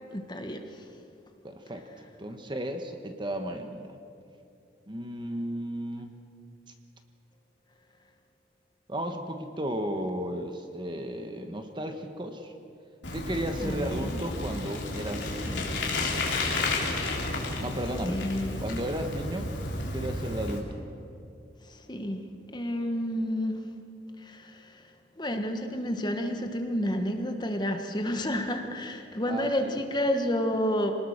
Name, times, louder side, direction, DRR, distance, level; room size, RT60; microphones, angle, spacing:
voice 1, 0.1-0.8 13.6-14.2 18.1-18.6 21.6-22.2 22.5-23.6 24.2-24.9 25.2-30.9, equal, 20° left, 5 dB, 1.4 m, -30 dB
voice 2, 1.4-1.9 2.2-3.9 4.9-6.1 8.9-12.5 13.1-15.8 17.6-18.2 18.6-19.5 19.8-20.7 29.3-29.8, right 1 dB, 25° right, 6 dB, 1.3 m, -34 dB
Bicycle, 13.0-20.6, left 2 dB, 65° left, 3.5 m, -32 dB
25.0 x 19.5 x 6.6 m, 2.6 s
head